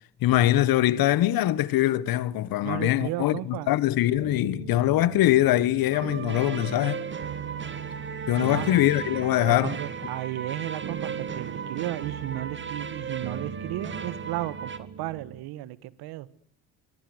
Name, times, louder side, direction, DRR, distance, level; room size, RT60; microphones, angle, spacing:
voice 1, 0.2-7.0 8.3-9.8, left 14 dB, 65° left, 1.5 m, -23 dB
voice 2, 2.6-3.7 8.3-8.7 9.5-16.3, right 16 dB, 75° right, 1.6 m, -34 dB
sound 1, 4.2-15.4, right 7 dB, 50° right, 1.8 m, -39 dB
sound 2, 5.9-14.8, right 6 dB, 30° right, 2.7 m, -37 dB
25.0 x 23.5 x 8.0 m
supercardioid pair, 80°, 38 cm